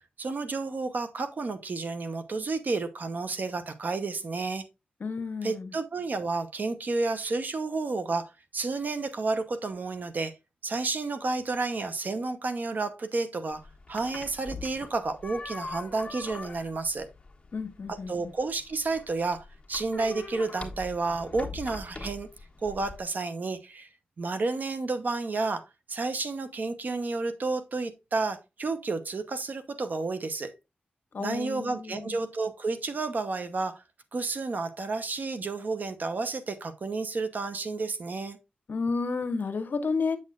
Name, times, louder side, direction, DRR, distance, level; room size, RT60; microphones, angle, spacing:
voice 1, 0.2-4.6 5.4-10.3 10.6-13.6 13.9-17.1 17.9-22.3 22.6-23.9 24.2-30.5 31.2-33.8 34.1-38.4, right 3 dB, 60° right, 0.9 m, -31 dB
voice 2, 5.0-5.7 17.5-18.1 31.1-32.1 38.7-40.2, left 4 dB, 65° left, 0.9 m, -31 dB
sound 1, 13.5-23.1, left 3 dB, 25° left, 1.4 m, -43 dB
7.0 x 6.5 x 2.4 m
cardioid pair, 70°, 3 cm